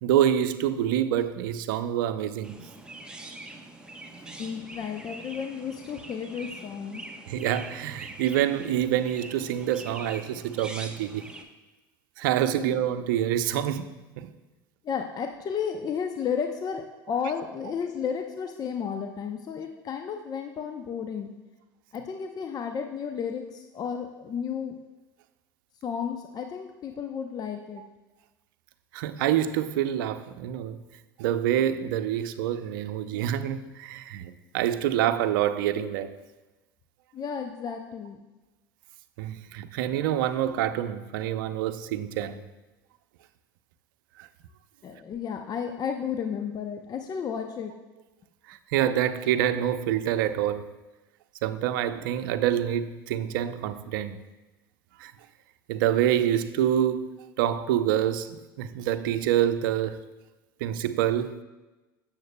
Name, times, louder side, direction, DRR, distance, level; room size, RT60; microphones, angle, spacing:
voice 1, 0.0-2.6 7.3-11.3 12.2-13.9 14.2-14.3 28.9-30.8 31.2-36.2 39.2-42.4 44.2-44.3 48.5-50.7 51.4-54.2 55.0-55.1 55.7-60.0 60.6-61.4, right 11 dB, 70° right, 0.6 m, -26 dB
Chirp tweet, 2.4-11.4, right 2 dB, 10° right, 1.0 m, -44 dB
voice 2, 4.4-7.0 12.6-12.8 14.8-21.3 21.9-24.7 25.8-27.8 37.1-38.2 44.8-47.7, left 7 dB, 35° left, 0.7 m, -33 dB
17.0 x 7.3 x 2.2 m
hypercardioid pair, 80°, 12 cm